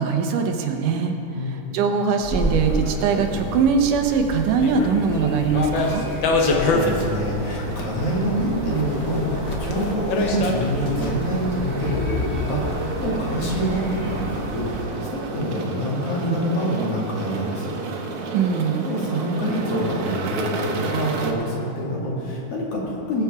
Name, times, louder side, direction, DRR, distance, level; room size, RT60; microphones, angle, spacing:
voice 1, 0.0-1.2 1.4-6.1 18.3-18.9, right 5 dB, 90° right, 4 dB, 2.5 m, -21 dB
sound 1, 2.2-14.8, equal, 10° left, 0.9 m, -30 dB
sound 2, 4.6-5.1 5.5-7.1 7.4-8.2 8.7-11.2, left 3 dB, 80° left, 1.0 m, -24 dB
voice 2, 6.1-17.7 18.9-23.2, equal, 50° left, -5 dB, 3.0 m, -26 dB
sound 3, 6.7-21.3, right 4 dB, 70° right, 2.3 m, -32 dB
19.5 x 6.9 x 4.8 m, 2.6 s
omnidirectional pair, 3.6 m